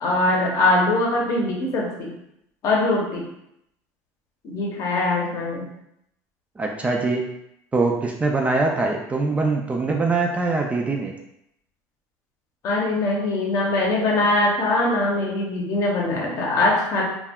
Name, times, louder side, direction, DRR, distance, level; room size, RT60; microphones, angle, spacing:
voice 1, 0.0-2.1 2.6-3.3 4.4-5.7 12.6-17.0, left 2 dB, 50° left, -1 dB, 0.7 m, -22 dB
voice 2, 6.6-7.3 7.7-11.2, right 3 dB, 20° right, 1 dB, 0.3 m, -23 dB
2.2 x 2.0 x 3.4 m, 0.79 s
supercardioid pair, 120°, 7 cm